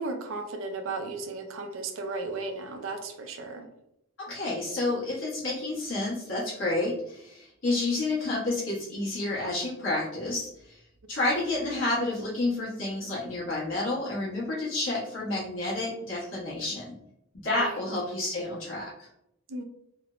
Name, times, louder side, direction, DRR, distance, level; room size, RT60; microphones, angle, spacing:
voice 1, 0.0-3.7 17.6-17.9 19.5-19.6, right 3 dB, 70° right, 6 dB, 0.4 m, -35 dB
voice 2, 4.2-10.8 11.1-17.0 17.3-19.1, left 2 dB, 65° left, -7 dB, 1.0 m, -30 dB
3.2 x 2.0 x 2.4 m, 0.79 s
head